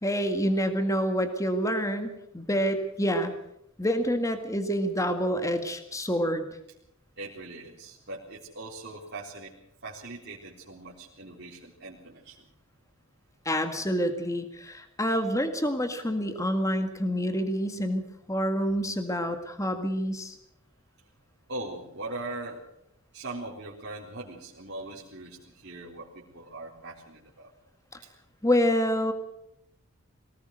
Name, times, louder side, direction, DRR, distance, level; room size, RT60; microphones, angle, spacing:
voice 1, 0.0-3.3 3.8-6.5 13.5-18.0 18.3-20.4 28.4-29.1, equal, 15° left, 7 dB, 1.8 m, -27 dB
voice 2, 7.2-9.5 9.8-12.4 21.5-22.6 23.1-27.5 28.0-28.1, right 2 dB, 50° right, -6 dB, 3.8 m, -40 dB
23.0 x 19.0 x 6.5 m, 0.79 s
head